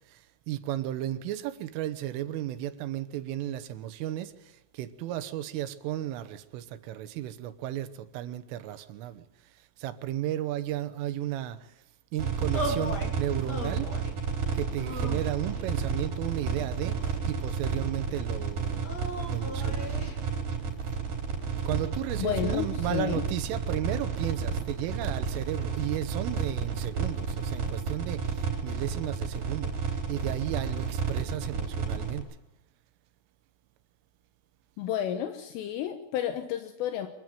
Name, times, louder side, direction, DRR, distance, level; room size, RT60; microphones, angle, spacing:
voice 1, 0.1-9.3 9.8-11.7 12.1-13.9 14.5-18.9 19.3-20.0 21.7-29.7 30.1-32.3, right 13 dB, 80° right, 3.7 m, -34 dB
sound 1, 12.2-32.2, right 5 dB, 45° right, 5.2 m, -31 dB
sound 2, 12.5-13.1 13.5-14.2 14.8-15.7 16.4-17.4 18.8-20.2, equal, 25° left, 3.3 m, -37 dB
voice 2, 22.2-23.3 34.8-37.1, left 10 dB, 80° left, 3.8 m, -31 dB
25.0 x 15.5 x 9.3 m
omnidirectional pair, 5.8 m